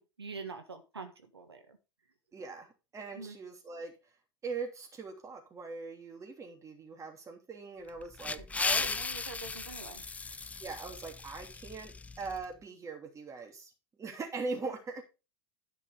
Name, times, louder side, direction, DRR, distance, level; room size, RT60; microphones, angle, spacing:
voice 1, 0.0-1.8 3.1-3.4 8.4-10.3 14.6-14.7, right 4 dB, 90° right, 6 dB, 1.6 m, -45 dB
voice 2, 2.3-3.9 4.4-9.0 10.6-13.7 14.0-15.0, right 4 dB, 25° right, 3 dB, 3.0 m, -41 dB
sound 1, 7.9-12.4, left 4 dB, 10° left, 0.4 m, -36 dB
10.5 x 5.5 x 5.0 m, 0.29 s
figure-of-eight pair, 85°, 13 cm